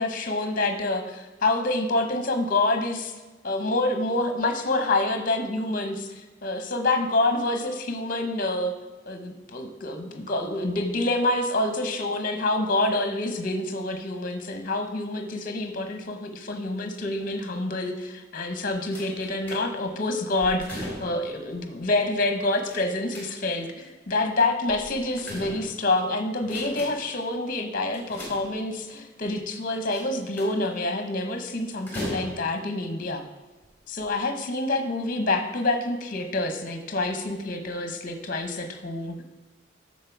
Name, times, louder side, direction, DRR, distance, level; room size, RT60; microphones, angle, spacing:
voice 1, 0.0-3.1 3.4-6.1 6.4-8.7 9.1-33.2 33.9-39.2, left 2 dB, 45° left, 6 dB, 0.9 m, -27 dB
sound 1, 18.9-19.9 20.4-21.3 22.7-23.7 24.7-26.0 26.4-27.2 27.9-28.9 29.9-30.7 31.9-32.7 33.5-33.6 34.0-34.1, equal, 10° left, 2.1 m, -38 dB
7.4 x 6.4 x 4.6 m, 1.2 s
head